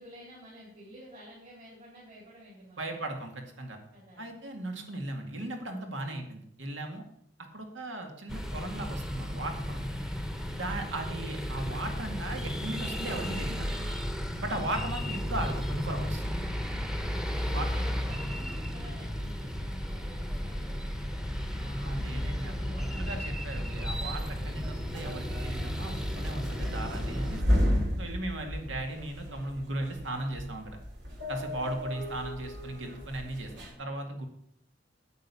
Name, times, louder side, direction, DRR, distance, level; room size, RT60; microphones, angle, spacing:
voice 1, 0.0-3.0 3.9-4.3 17.3-21.4 22.2-23.0, equal, 45° right, -6 dB, 3.9 m, -50 dB
voice 2, 2.8-3.8 4.2-7.0 7.5-10.0 10.5-13.7 14.4-16.2 17.5-17.7 21.6-27.4 28.0-30.8 31.3-33.5 33.8-34.3, right 1 dB, 85° right, 4 dB, 2.1 m, -37 dB
sound 1, 8.3-27.4, equal, 5° right, 0.9 m, -34 dB
sound 2, 23.9-33.7, left 1 dB, 65° right, 2.9 m, -34 dB
9.2 x 8.1 x 7.0 m, 0.70 s
head